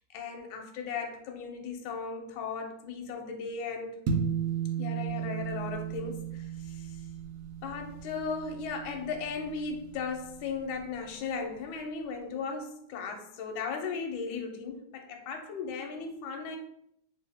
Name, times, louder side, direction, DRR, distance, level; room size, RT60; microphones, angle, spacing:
voice 1, 0.0-3.9 4.8-6.9 7.6-16.6, left 5 dB, 75° left, 3 dB, 1.3 m, -36 dB
sound 1, 4.1-10.7, right 7 dB, 75° right, 1.4 m, -35 dB
3.4 x 2.7 x 3.4 m, 0.72 s
omnidirectional pair, 2.4 m